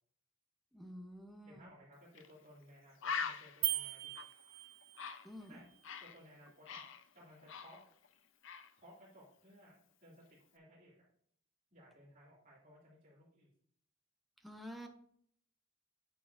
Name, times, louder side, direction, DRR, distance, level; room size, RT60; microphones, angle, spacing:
voice 1, 0.7-1.7 5.2-5.6 14.4-14.9, equal, ahead, 2 dB, 0.9 m, -49 dB
voice 2, 1.4-4.2 5.5-5.7 6.0-6.9 7.1-7.8 8.8-11.0 11.7-13.5, equal, 40° right, -9 dB, 2.8 m, -60 dB
Bird, 2.1-2.3 2.6-2.7 3.0-6.2 6.5-8.1 8.4-8.7, left 6 dB, 65° left, 0.6 m, -43 dB
sound 1, 3.6-5.2, right 15 dB, 70° right, 0.6 m, -38 dB
9.5 x 7.6 x 2.7 m, 0.64 s
head